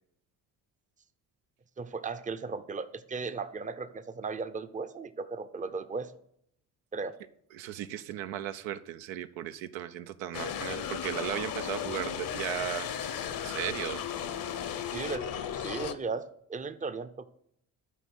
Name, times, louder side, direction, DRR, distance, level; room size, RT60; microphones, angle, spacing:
voice 1, 1.8-6.1 6.9-7.2 14.9-17.3, right 4 dB, 20° right, 12 dB, 0.6 m, -36 dB
voice 2, 7.5-12.9 13.4-14.0, right 11 dB, 80° right, 10 dB, 0.6 m, -36 dB
sound 1, 10.3-16.0, left 8 dB, 50° left, 0.8 m, -35 dB
9.0 x 4.1 x 6.4 m, 0.71 s
hypercardioid pair, 55°, 44 cm